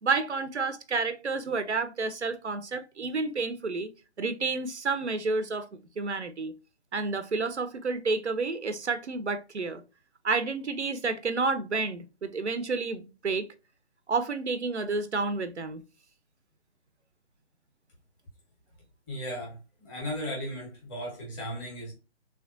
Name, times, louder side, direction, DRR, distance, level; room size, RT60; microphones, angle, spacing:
voice 1, 0.0-3.9 4.2-5.7 6.0-6.5 6.9-9.8 10.2-13.5 14.1-15.8, right 4 dB, 85° right, 0.7 m, -30 dB
voice 2, 19.1-21.9, equal, 15° left, 1.6 m, -36 dB
3.4 x 3.3 x 2.5 m
figure-of-eight pair, 145°, 33 cm